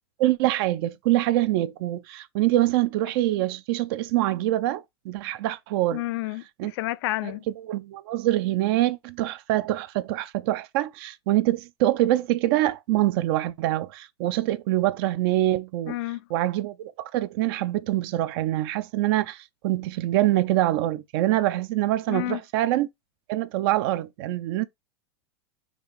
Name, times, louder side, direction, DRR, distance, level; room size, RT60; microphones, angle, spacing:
voice 1, 0.2-6.0 6.6-6.7 7.2-16.0 16.3-22.9 23.3-24.7, right 15 dB, 60° right, 0.4 m, -25 dB
voice 2, 5.9-7.4 15.9-16.2 22.1-22.4, left 18 dB, 65° left, 0.4 m, -30 dB
4.9 x 2.4 x 3.3 m
hypercardioid pair, 110°, 14 cm